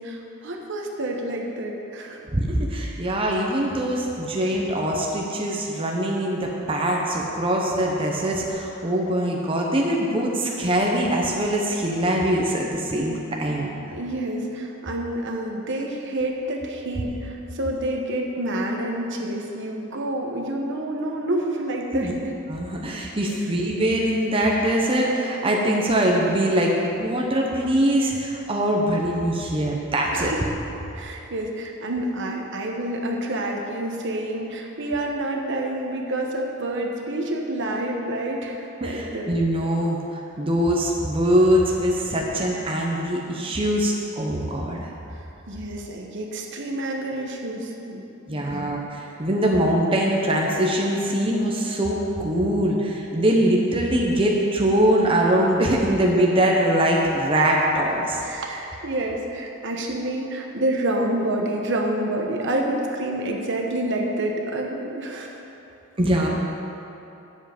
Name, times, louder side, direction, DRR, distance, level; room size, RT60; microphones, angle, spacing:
voice 1, 0.0-2.2 13.9-22.1 30.1-30.4 30.9-39.3 45.5-48.7 58.2-65.4, right 1 dB, 60° right, 1 dB, 1.1 m, -28 dB
voice 2, 2.3-13.7 21.9-22.1 22.5-30.3 38.8-44.9 48.3-58.2 66.0-66.3, right 1 dB, 25° right, -2 dB, 0.9 m, -22 dB
10.0 x 7.4 x 5.1 m, 2.9 s
head